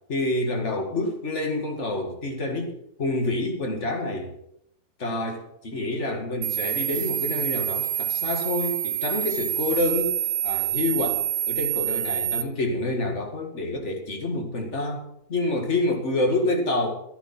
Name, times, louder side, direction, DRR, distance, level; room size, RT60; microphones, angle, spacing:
voice 1, 0.1-4.3 5.0-10.2 10.4-15.0 15.3-17.0, left 2 dB, 35° left, 3 dB, 2.3 m, -27 dB
sound 1, 6.4-12.4, right 11 dB, 65° right, 1.3 m, -27 dB
14.0 x 9.8 x 6.0 m, 0.75 s
omnidirectional pair, 2.1 m